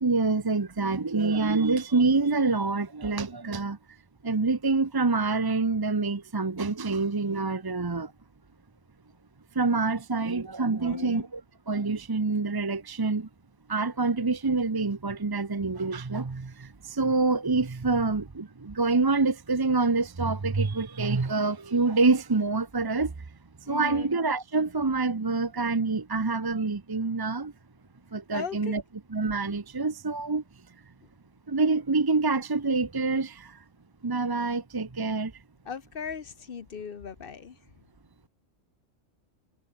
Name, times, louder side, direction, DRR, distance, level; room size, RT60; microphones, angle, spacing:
voice 1, 0.0-3.8 4.2-8.1 9.6-11.4 11.7-13.3 13.7-23.1 23.7-27.5 28.1-28.8 29.1-30.4 31.5-33.6 34.0-35.3, right 3 dB, 25° right, 0.6 m, -26 dB
voice 2, 10.8-11.3 23.7-24.1 28.3-28.8 31.0-31.1 35.6-37.6, left 6 dB, 50° left, 1.1 m, -38 dB
omnidirectional pair, 1.3 m